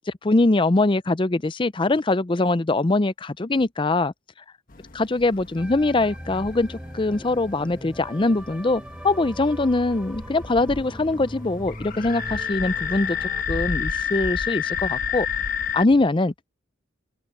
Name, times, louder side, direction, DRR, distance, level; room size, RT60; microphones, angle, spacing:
voice 1, 0.2-4.1 4.9-15.3 15.7-16.5, left 2 dB, 25° left, 0.5 m, -22 dB
sound 1, 4.7-15.9, left 7 dB, 45° left, 1.2 m, -31 dB
sound 2, 5.6-13.4, equal, 5° right, 3.6 m, -40 dB
head